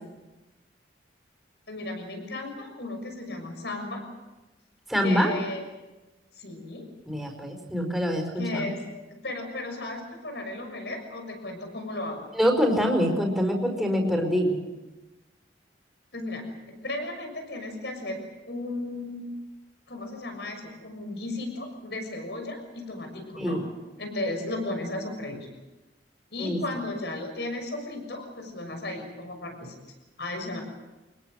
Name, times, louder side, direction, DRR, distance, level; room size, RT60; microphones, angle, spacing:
voice 1, 1.7-4.0 5.0-5.6 6.4-6.9 8.4-8.8 9.2-12.3 16.1-18.2 18.4-19.3 19.9-23.6 24.0-25.5 26.3-29.7 30.2-30.6, left 2 dB, 70° left, 5 dB, 6.4 m, -35 dB
voice 2, 4.9-5.3 7.0-8.7 12.3-14.6 23.4-23.6 26.4-26.6, equal, ahead, 1 dB, 5.1 m, -25 dB
26.0 x 21.0 x 7.8 m, 1.1 s
head